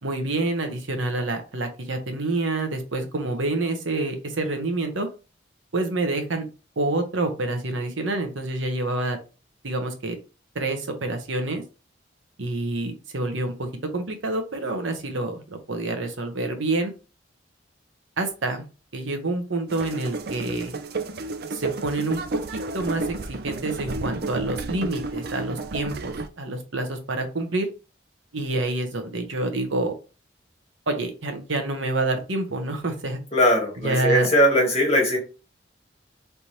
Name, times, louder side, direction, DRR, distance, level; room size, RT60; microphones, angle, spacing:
voice 1, 0.0-5.1 5.7-6.4 6.8-9.2 9.6-10.2 10.5-11.6 12.4-13.7 13.9-16.9 18.2-18.6 18.9-20.7 21.5-22.2 22.5-27.7 28.3-30.0 30.9-33.2 33.8-34.3, right 2 dB, 85° right, 6 dB, 1.0 m, -27 dB
sound 1, 19.7-26.3, right 3 dB, 50° right, 0.4 m, -32 dB
voice 2, 33.3-35.2, equal, 35° left, 0 dB, 1.5 m, -20 dB
4.2 x 3.4 x 3.0 m, 0.32 s
head